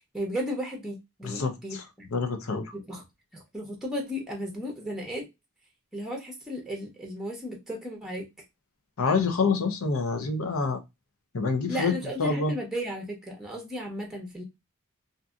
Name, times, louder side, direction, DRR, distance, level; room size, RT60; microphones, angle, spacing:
voice 1, 0.1-2.1 2.7-3.0 3.3-5.2 5.9-8.2 11.7-14.4, equal, ahead, 0.7 m, -34 dB
voice 2, 1.2-2.7 9.0-10.8 11.3-11.9 12.2-12.5, left 4 dB, 80° left, 0.6 m, -27 dB
2.6 x 2.6 x 2.3 m
head